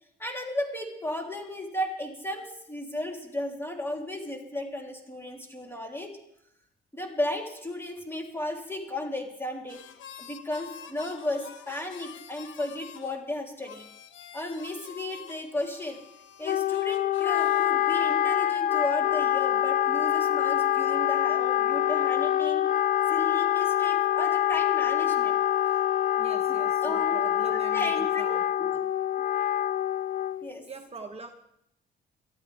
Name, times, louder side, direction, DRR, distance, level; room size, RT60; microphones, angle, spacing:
voice 1, 0.2-6.1 6.9-9.8 10.2-13.9 14.3-16.0 16.4-22.7 23.1-25.4 26.8-27.2 27.5-28.8 30.4-30.6, left 1 dB, 10° left, 1 dB, 3.5 m, -34 dB
sound 1, 9.7-13.2 13.6-17.7, left 8 dB, 75° left, 1.3 m, -47 dB
Wind instrument woodwind instrument, 16.4-30.5, left 11 dB, 45° left, 0.5 m, -25 dB
voice 2, 26.2-28.4 30.7-31.3, right 3 dB, 30° right, 3 dB, 1.2 m, -42 dB
23.5 x 13.0 x 3.5 m, 0.74 s
cardioid pair, 90°, 20 cm